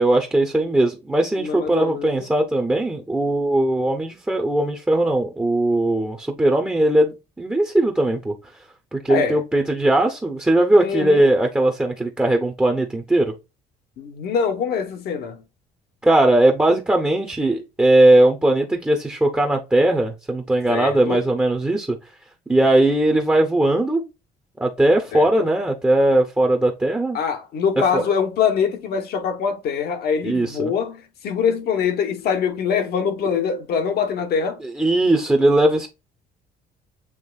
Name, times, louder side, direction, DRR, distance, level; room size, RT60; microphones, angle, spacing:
voice 1, 0.0-8.3 8.9-13.3 16.0-22.0 22.5-24.0 24.6-27.2 27.9-28.0 30.2-30.7 34.8-35.9, right 1 dB, 10° right, 0.7 m, -19 dB
voice 2, 1.4-2.3 9.1-9.4 10.8-11.3 14.0-15.4 20.7-21.2 25.1-25.5 27.1-34.6, left 6 dB, 70° left, 1.0 m, -24 dB
7.3 x 3.0 x 2.3 m
cardioid pair, 110°, 17 cm